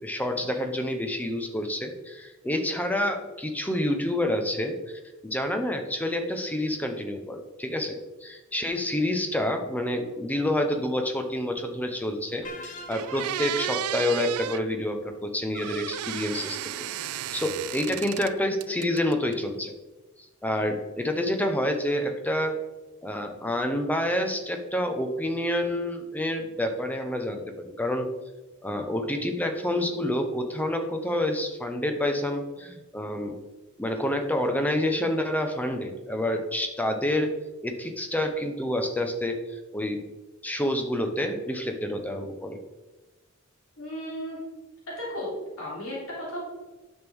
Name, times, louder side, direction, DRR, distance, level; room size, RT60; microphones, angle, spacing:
voice 1, 0.0-19.7 20.4-22.6 23.0-28.1 28.6-33.4 33.8-37.3 37.6-40.0 40.4-42.6, left 1 dB, 5° left, 5 dB, 0.7 m, -28 dB
sound 1, 12.4-13.5, left 2 dB, 35° left, 0.8 m, -42 dB
sound 2, 12.4-12.5 12.9-14.6 15.5-18.3 18.6-19.3, right 11 dB, 85° right, 0.4 m, -33 dB
voice 2, 43.8-44.4 44.9-45.3 45.6-46.5, equal, 70° left, -6 dB, 3.1 m, -34 dB
10.0 x 6.2 x 3.5 m, 1.2 s
head